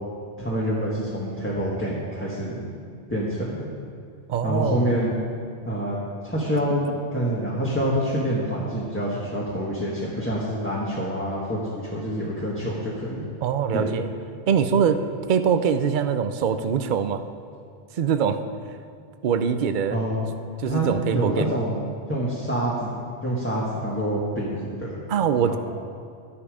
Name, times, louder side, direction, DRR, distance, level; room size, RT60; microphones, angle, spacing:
voice 1, 0.4-2.7 3.1-3.7 4.4-5.2 5.6-13.2 13.7-13.9 14.7-14.9 19.9-20.3 20.6-25.0 25.5-25.6, equal, 10° left, -7 dB, 1.6 m, -27 dB
voice 2, 4.3-4.9 13.4-14.1 14.5-15.0 15.3-17.2 18.0-18.4 19.2-20.0 20.6-21.6 25.1-25.6, right 7 dB, 50° right, 9 dB, 0.7 m, -23 dB
12.5 x 10.0 x 4.9 m, 2.4 s
omnidirectional pair, 1.2 m